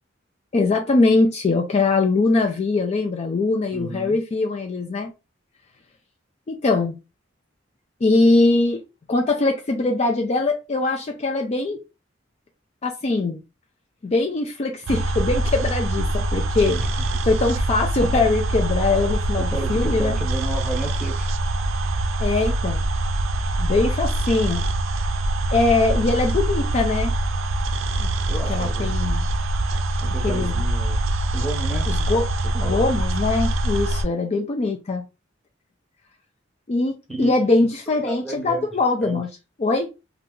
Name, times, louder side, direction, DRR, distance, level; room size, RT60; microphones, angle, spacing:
voice 1, 0.5-5.1 6.5-7.0 8.0-8.8 9.1-11.8 12.8-13.4 14.0-16.8 17.2-20.2 22.2-22.8 23.6-24.6 25.5-27.1 28.0-28.1 28.5-29.3 30.2-30.6 31.9-32.3 32.5-35.0 36.7-39.3 39.6-39.9, left 3 dB, 35° left, 0.4 m, -22 dB
voice 2, 3.7-4.2 16.7-17.1 19.4-21.3 28.3-28.9 30.0-31.0 31.3-31.8 32.6-32.7 37.1-37.3 37.9-38.7 39.0-39.2, right 2 dB, ahead, 0.9 m, -32 dB
sound 1, 14.8-34.0, right 1 dB, 80° right, 0.4 m, -24 dB
2.7 x 2.3 x 3.6 m
head